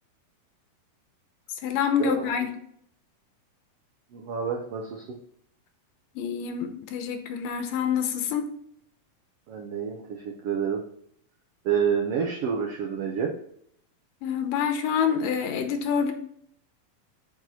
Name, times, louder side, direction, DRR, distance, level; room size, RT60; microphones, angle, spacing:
voice 1, 1.6-2.5 6.2-8.5 14.2-16.1, left 7 dB, 85° left, 6 dB, 2.5 m, -27 dB
voice 2, 4.1-5.0 9.5-10.8 11.6-13.3, right 7 dB, 90° right, 0 dB, 1.3 m, -28 dB
6.0 x 4.8 x 4.0 m, 0.69 s
omnidirectional pair, 3.9 m